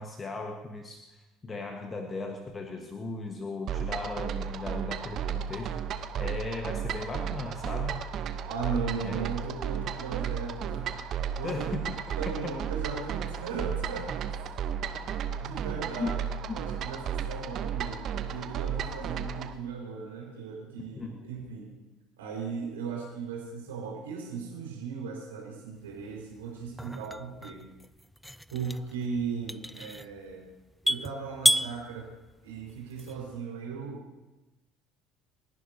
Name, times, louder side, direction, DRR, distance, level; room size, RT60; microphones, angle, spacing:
voice 1, 0.0-5.8 6.2-8.0 9.0-9.3 11.4-11.9 12.4-12.6 16.0-16.1 16.5-16.6 20.9-21.2, left 3 dB, 25° left, 4 dB, 1.4 m, -37 dB
sound 1, 3.7-19.5, right 8 dB, 50° right, 0.9 m, -34 dB
voice 2, 8.5-10.9 11.4-11.7 12.2-14.3 14.9-15.1 15.4-16.2 16.5-21.7 22.2-27.7 28.5-30.5 30.8-32.1 32.4-34.0, right 5 dB, 75° right, -1 dB, 4.8 m, -37 dB
sound 2, 25.8-33.4, equal, ahead, 0.4 m, -33 dB
30.0 x 11.0 x 2.8 m, 1.1 s
hypercardioid pair, 65°, 0 cm